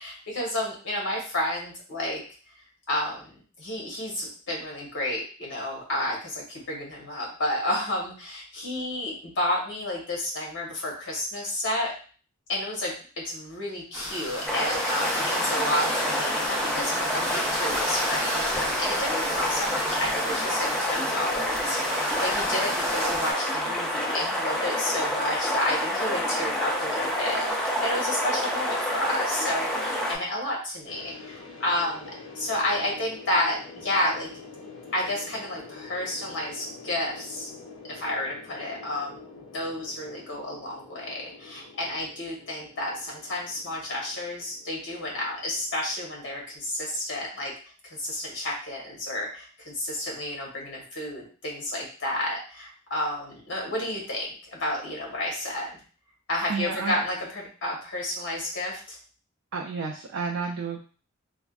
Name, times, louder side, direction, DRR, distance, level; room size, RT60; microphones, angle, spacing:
voice 1, 0.0-2.2 2.9-11.9 12.5-34.3 34.9-37.5 37.9-47.5 47.9-55.7 56.3-59.0, left 1 dB, 60° left, -2 dB, 1.1 m, -31 dB
sound 1, 13.9-23.3, equal, 15° right, 1.0 m, -32 dB
sound 2, 14.5-30.1, equal, ahead, 0.4 m, -28 dB
sound 3, 30.9-47.0, left 4 dB, 80° left, 0.8 m, -46 dB
voice 2, 56.5-57.0 59.5-60.8, right 5 dB, 70° right, 1 dB, 0.4 m, -31 dB
3.4 x 2.1 x 2.4 m, 0.39 s
head